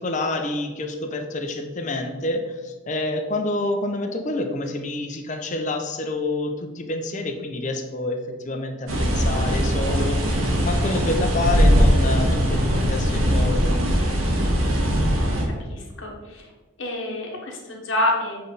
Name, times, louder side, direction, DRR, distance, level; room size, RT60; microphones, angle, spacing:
voice 1, 0.0-13.8, left 2 dB, 35° left, 4 dB, 0.6 m, -28 dB
sound 1, 8.9-15.4, equal, 75° right, 1.2 m, -20 dB
voice 2, 15.7-16.5 16.8-18.4, left 1 dB, 60° left, -1 dB, 1.2 m, -27 dB
7.4 x 3.3 x 3.9 m, 1.3 s
head